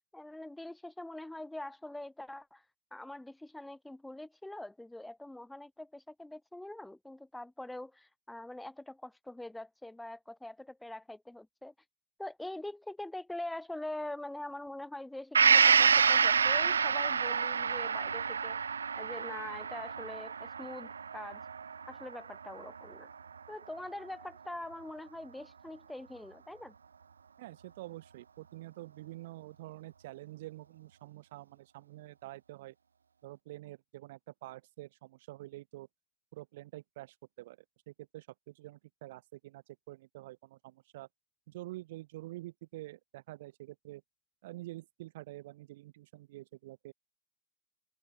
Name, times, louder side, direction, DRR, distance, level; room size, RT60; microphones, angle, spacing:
voice 1, 0.1-2.6 2.9-11.7 12.2-18.6 18.9-21.4 21.9-23.1 23.5-26.7, left 1 dB, 5° left, 3.8 m, -44 dB
Gong, 15.3-23.0 23.4-23.5, right 6 dB, 70° right, 1.2 m, -28 dB
voice 2, 27.4-32.7 33.2-35.9 36.3-37.6 37.9-41.1 41.5-44.0 44.4-46.9, right 17 dB, 55° right, 3.8 m, -47 dB
open air
figure-of-eight pair, 90°, 0 cm